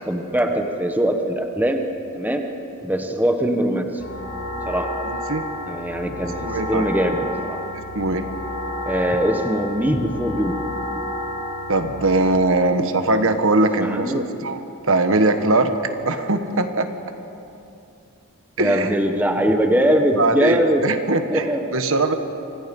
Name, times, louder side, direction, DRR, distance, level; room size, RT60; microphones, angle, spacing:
voice 1, 0.1-1.8 2.1-2.4 2.8-3.9 4.6-4.9 5.7-6.3 6.7-7.6 8.8-10.5 13.8-14.3 18.6-20.8 21.3-21.6, equal, 10° right, 4 dB, 1.4 m, -21 dB
sound 1, 4.0-12.2, left 1 dB, 80° left, 7.4 m, -30 dB
voice 2, 5.0-5.4 6.4-6.9 7.9-8.3 11.7-16.9 18.6-18.9 20.1-22.1, right 2 dB, 60° right, 7 dB, 1.4 m, -21 dB
29.0 x 25.5 x 5.5 m, 2.8 s
head